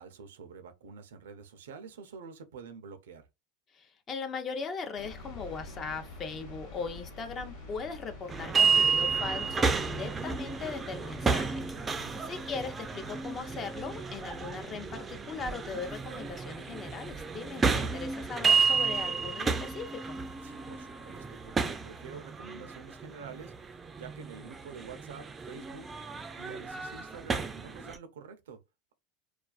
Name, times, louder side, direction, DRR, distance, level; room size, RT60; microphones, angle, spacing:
voice 1, 0.0-3.3 11.8-12.2 20.4-25.9 26.3-28.6, right 5 dB, 85° right, 0.4 m, -48 dB
voice 2, 3.7-20.2, left 5 dB, 35° left, 0.5 m, -39 dB
sound 1, 5.0-16.4, left 2 dB, 85° left, 0.9 m, -48 dB
sound 2, 8.3-28.0, right 5 dB, 20° right, 0.3 m, -31 dB
2.3 x 2.2 x 2.3 m
hypercardioid pair, 105°, 0 cm